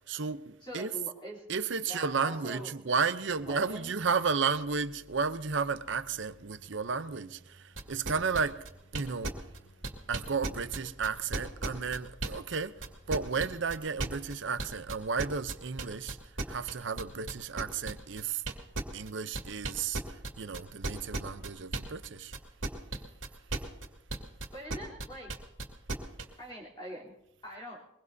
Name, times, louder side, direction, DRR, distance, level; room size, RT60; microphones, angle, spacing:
voice 1, 0.1-0.9 1.5-8.6 8.9-9.4 10.1-18.4 18.9-22.3, right 5 dB, 75° right, 0.7 m, -33 dB
voice 2, 0.6-1.4 1.9-2.7 3.4-3.9 24.5-25.3 26.4-27.1 27.4-27.8, equal, 25° left, 3.4 m, -43 dB
sound 1, 3.2-13.3, equal, 60° left, 6.5 m, -58 dB
sound 2, 7.8-12.6 12.8-22.1 22.3-26.2, right 2 dB, 90° right, 2.3 m, -35 dB
22.5 x 22.5 x 2.7 m
head